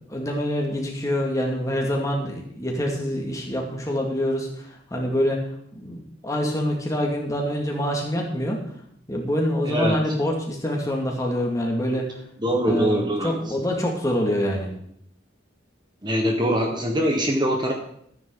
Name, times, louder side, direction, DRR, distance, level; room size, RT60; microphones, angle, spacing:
voice 1, 0.0-5.4 5.7-8.6 9.1-12.2 12.7-14.7, equal, 15° left, 0 dB, 2.2 m, -26 dB
voice 2, 9.6-10.0 12.4-13.3 16.0-17.7, equal, 25° right, 1 dB, 1.4 m, -23 dB
13.5 x 9.3 x 3.9 m, 0.69 s
head